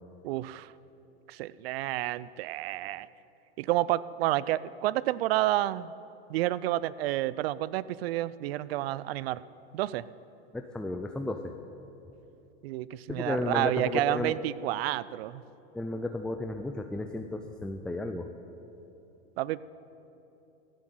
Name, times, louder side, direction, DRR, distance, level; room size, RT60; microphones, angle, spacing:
voice 1, 0.2-0.7 1.3-3.1 3.6-5.9 6.3-9.4 9.7-10.1 12.6-15.4 19.4-19.6, right 15 dB, 70° right, 19 dB, 0.5 m, -30 dB
voice 2, 10.5-11.5 13.1-14.4 15.7-18.3, left 2 dB, 5° left, 6 dB, 0.4 m, -33 dB
14.5 x 7.4 x 9.2 m, 3.0 s
hypercardioid pair, 120°, 31 cm